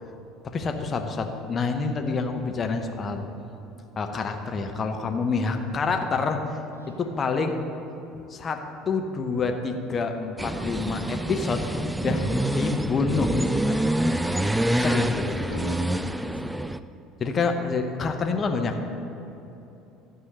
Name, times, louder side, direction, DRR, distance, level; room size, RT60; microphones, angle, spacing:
voice 1, 0.4-3.3 4.0-6.4 7.0-7.6 8.3-12.2 12.5-14.1 14.8-15.2 17.2-18.8, left 4 dB, 30° left, 5 dB, 0.9 m, -27 dB
voice 2, 5.0-5.5 6.7-7.1 12.0-12.4 14.9-16.4, left 1 dB, 85° right, 3 dB, 0.8 m, -41 dB
sound 1, 10.4-16.8, right 1 dB, 5° right, 0.3 m, -26 dB
13.0 x 4.8 x 6.5 m, 2.9 s
figure-of-eight pair, 65°, 0 cm